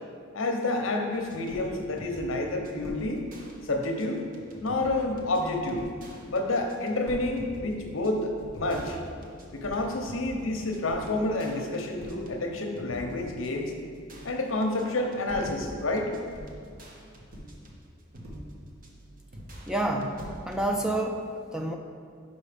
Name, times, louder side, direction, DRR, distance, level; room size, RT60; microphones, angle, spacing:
voice 1, 0.3-3.2 3.6-4.2 4.6-5.8 6.3-9.0 9.5-13.7 14.2-16.1, left 2 dB, 70° left, 3 dB, 0.8 m, -29 dB
sound 1, 1.1-20.6, right 1 dB, 45° right, 0.9 m, -48 dB
sound 2, 1.5-1.8 2.8-3.2 5.4-6.3 7.0-7.6 8.3-8.8 9.6-10.0 10.9-11.3 11.9-12.4 13.2-13.6 14.1-14.5 15.3-15.7 16.3-16.8 17.3-17.8 18.2-18.7 19.3-19.5 20.2-20.8, equal, 80° right, 1.6 m, -45 dB
voice 2, 19.7-21.8, right 1 dB, 5° right, 2 dB, 0.3 m, -29 dB
5.4 x 5.3 x 5.0 m, 2.2 s
head